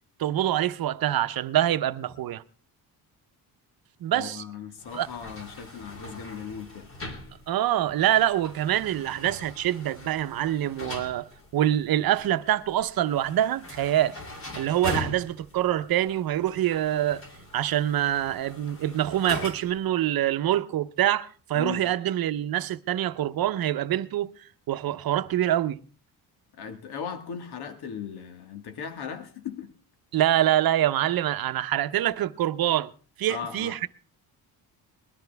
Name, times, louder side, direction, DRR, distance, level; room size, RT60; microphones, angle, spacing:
voice 1, 0.2-2.4 4.0-4.4 4.9-5.1 7.5-11.2 11.5-14.2 14.5-17.2 17.5-24.3 24.7-25.8 30.1-32.9 33.2-33.9, right 12 dB, 60° right, 0.8 m, -25 dB
voice 2, 4.1-6.9 21.5-21.8 26.6-29.7 33.3-33.8, left 7 dB, 70° left, 1.9 m, -37 dB
sound 1, 4.8-19.9, left 2 dB, 30° left, 3.2 m, -41 dB
21.0 x 13.0 x 3.4 m
cardioid pair, 125°, 40 cm